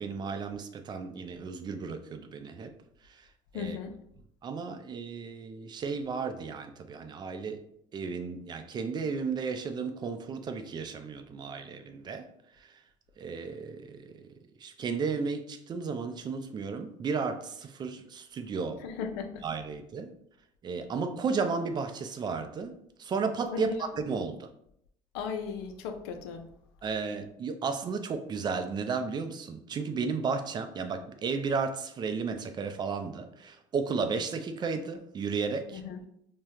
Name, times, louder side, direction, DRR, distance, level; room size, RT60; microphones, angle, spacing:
voice 1, 0.0-2.7 3.0-3.3 3.5-3.8 4.4-7.6 7.9-12.3 12.5-12.8 13.2-18.8 19.4-20.1 20.6-22.7 23.0-24.5 26.8-35.8, right 5 dB, 35° right, 8 dB, 0.4 m, -34 dB
voice 2, 3.5-3.9 18.8-19.4 23.5-23.9 25.1-26.5 35.7-36.0, left 6 dB, 80° left, 6 dB, 0.4 m, -36 dB
3.4 x 2.2 x 2.7 m, 0.73 s
supercardioid pair, 85°, 13 cm